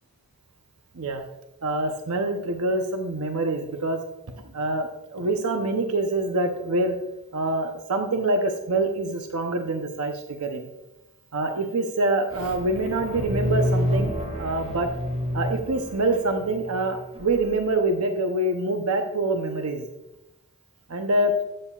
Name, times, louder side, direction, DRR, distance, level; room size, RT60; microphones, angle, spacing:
voice 1, 1.6-4.0 4.5-7.0 7.3-10.7 11.3-14.1 14.4-14.9 15.3-19.9 20.9-21.3, right 2 dB, 75° right, 5 dB, 0.8 m, -25 dB
sound 1, 12.3-17.3, equal, 35° right, 2.2 m, -28 dB
13.0 x 8.8 x 2.4 m, 0.94 s
head